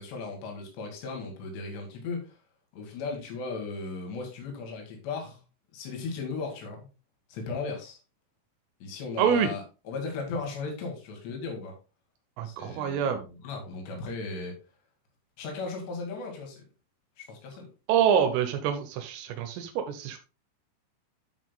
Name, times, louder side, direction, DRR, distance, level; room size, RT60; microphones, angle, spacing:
voice 1, 0.0-2.4 2.7-5.4 5.7-6.9 7.3-8.0 8.8-11.7 12.4-14.5 15.4-16.6 17.2-17.7, left 4 dB, 60° left, 2 dB, 3.9 m, -36 dB
voice 2, 9.2-9.5 12.4-13.2 17.9-20.2, right 8 dB, 85° right, 6 dB, 3.4 m, -26 dB
12.5 x 6.1 x 2.2 m, 0.31 s
omnidirectional pair, 5.8 m